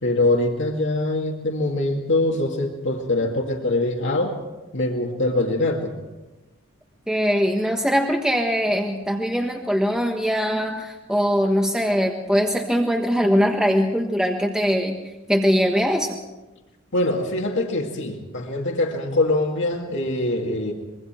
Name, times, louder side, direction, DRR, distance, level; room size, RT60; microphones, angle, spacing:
voice 1, 0.0-4.4 4.7-5.9 16.9-20.7, left 2 dB, 60° left, 1 dB, 2.2 m, -23 dB
voice 2, 7.1-16.2, equal, 5° right, 1 dB, 1.4 m, -22 dB
25.5 x 23.0 x 4.5 m, 1.1 s
head